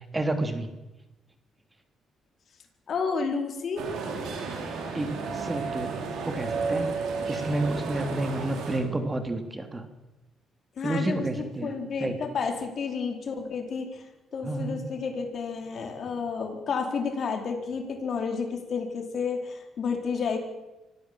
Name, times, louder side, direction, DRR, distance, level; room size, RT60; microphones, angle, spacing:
voice 1, 0.1-0.7 4.9-6.9 7.3-9.8 10.8-11.7 12.0-12.2 14.4-14.8, right 2 dB, 20° right, 7 dB, 2.9 m, -30 dB
voice 2, 2.9-3.8 10.8-14.0 14.3-20.4, left 5 dB, 55° left, 4 dB, 4.3 m, -31 dB
sound 1, 3.8-8.8, right 4 dB, 85° right, 5.6 m, -32 dB
24.5 x 15.5 x 7.6 m, 1.0 s
cardioid pair, 90°, 0 cm